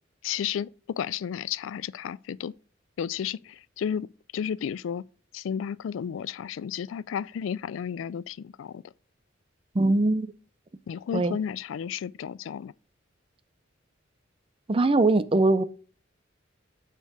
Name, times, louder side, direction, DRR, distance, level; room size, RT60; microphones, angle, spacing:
voice 1, 0.2-2.5 3.0-4.1 4.3-5.0 5.3-8.9 10.9-12.7, left 8 dB, 75° left, 0.3 m, -32 dB
voice 2, 9.7-10.3 11.1-11.4 14.7-15.6, right 2 dB, 30° right, 0.6 m, -21 dB
8.1 x 4.6 x 6.0 m
head